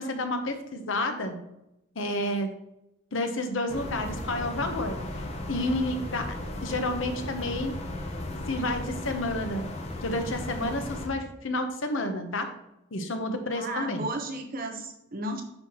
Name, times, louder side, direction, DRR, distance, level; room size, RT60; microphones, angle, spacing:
voice 1, 0.0-1.4 2.0-2.5 3.1-5.0 5.5-6.4 6.6-7.7 8.5-9.7 10.0-12.5 12.9-14.1, left 1 dB, 75° left, 6 dB, 0.9 m, -30 dB
sound 1, 3.7-11.1, left 1 dB, 30° left, 0.8 m, -36 dB
voice 2, 13.5-15.4, right 1 dB, 45° right, 4 dB, 1.0 m, -34 dB
9.7 x 4.5 x 2.9 m, 0.86 s
head